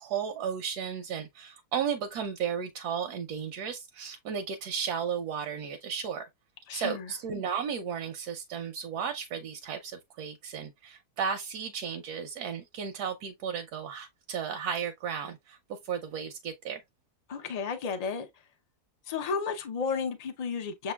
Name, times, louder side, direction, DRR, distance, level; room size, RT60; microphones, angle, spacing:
voice 1, 0.0-6.2 6.7-16.8, right 7 dB, 85° right, 1.2 m, -34 dB
voice 2, 6.7-7.1 17.3-18.3 19.1-20.9, left 5 dB, 70° left, 0.3 m, -33 dB
6.7 x 2.9 x 2.2 m
omnidirectional pair, 1.7 m